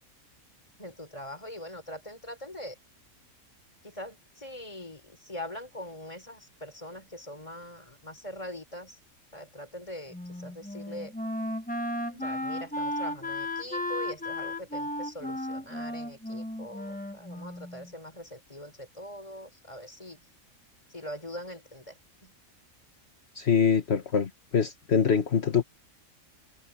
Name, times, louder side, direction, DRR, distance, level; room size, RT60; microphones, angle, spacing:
voice 1, 0.8-2.8 3.8-9.0 9.3-11.1 12.2-20.2 20.9-22.0 22.2-22.3, left 1 dB, 25° left, 4.8 m, -42 dB
Wind instrument woodwind instrument, 10.1-17.9, left 1 dB, 5° left, 1.2 m, -34 dB
voice 2, 23.3-25.6, left 7 dB, 50° left, 1.6 m, -24 dB
omnidirectional pair, 1.5 m